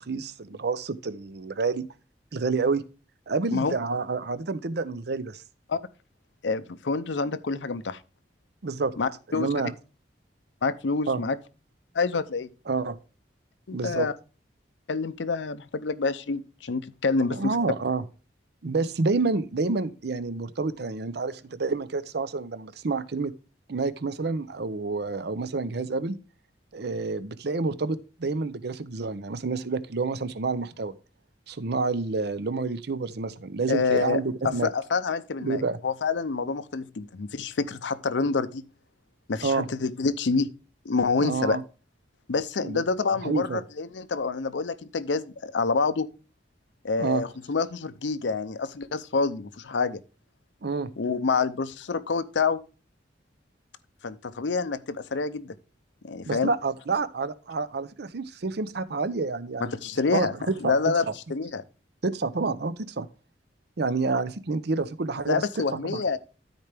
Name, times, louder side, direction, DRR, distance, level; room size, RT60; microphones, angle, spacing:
voice 1, 0.0-1.9 2.3-2.8 3.3-5.4 8.6-9.0 9.3-9.7 11.1-11.2 12.7-13.0 13.7-14.1 17.3-18.0 18.6-23.3 23.7-26.2 26.7-30.9 31.5-34.7 35.4-35.8 39.4-39.7 41.2-41.6 42.6-42.8 43.2-43.6 47.0-47.2 50.6-50.9 56.3-59.7 60.1-60.7 62.0-63.1 63.8-65.4 65.8-66.0, right 4 dB, 65° right, 0.6 m, -28 dB
voice 2, 6.4-8.0 9.0-9.5 10.6-11.4 11.9-12.5 13.7-14.1 14.9-17.5 33.7-38.6 39.3-40.5 40.8-41.6 42.3-46.1 46.8-50.0 51.0-52.6 54.0-55.5 56.0-56.5 59.6-60.3 60.6-61.0 61.3-61.6 65.3-66.2, left 4 dB, 85° left, 0.6 m, -27 dB
13.0 x 4.5 x 3.4 m
head